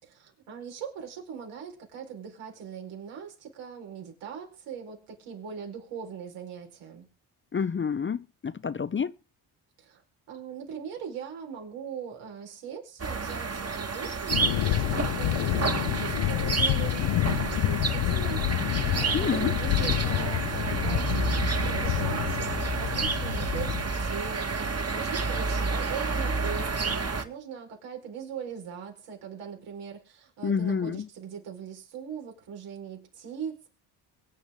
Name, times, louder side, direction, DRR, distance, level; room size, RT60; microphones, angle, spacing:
voice 1, 0.0-7.1 9.8-10.0 10.3-18.6 18.9-21.3 21.6-24.6 24.9-33.7, right 7 dB, 80° right, 4.7 m, -40 dB
voice 2, 7.5-9.1 19.1-19.5 30.4-31.1, left 6 dB, 25° left, 0.6 m, -28 dB
sound 1, 13.0-27.2, right 4 dB, 30° right, 1.9 m, -30 dB
sound 2, 14.3-23.8, left 16 dB, 60° left, 0.7 m, -28 dB
23.0 x 8.7 x 3.7 m
supercardioid pair, 55°, 49 cm